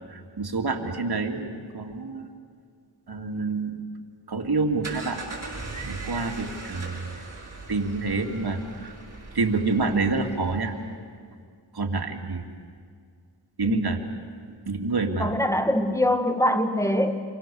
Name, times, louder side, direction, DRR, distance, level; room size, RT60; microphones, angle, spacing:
voice 1, 0.0-1.5 1.7-2.3 3.1-3.8 4.3-5.2 5.8-7.1 7.7-8.9 9.3-10.7 11.7-12.5 13.6-14.0 14.7-15.4, right 3 dB, 55° right, 3 dB, 2.6 m, -27 dB
sound 1, 4.5-10.9, right 3 dB, 35° right, 7.6 m, -39 dB
voice 2, 15.2-17.2, left 1 dB, 5° left, 7 dB, 2.1 m, -23 dB
27.5 x 23.5 x 7.1 m, 2.1 s
cardioid pair, 55°, 46 cm